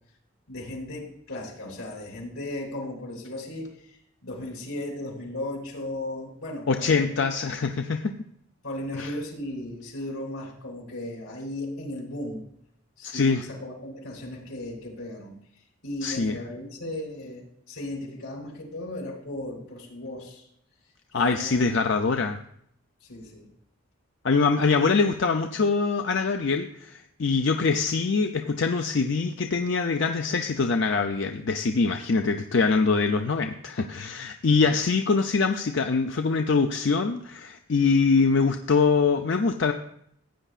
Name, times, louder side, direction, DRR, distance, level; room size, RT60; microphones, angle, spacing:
voice 1, 0.5-7.2 8.6-12.4 13.0-15.3 15.8-20.5 21.1-21.7 23.0-23.5 34.5-34.6, left 1 dB, 85° left, -1 dB, 3.5 m, -36 dB
voice 2, 6.7-8.1 8.9-9.1 13.0-13.4 16.0-16.3 21.1-22.4 24.2-39.7, left 4 dB, 55° left, 5 dB, 0.5 m, -24 dB
15.5 x 9.0 x 2.4 m, 0.70 s
head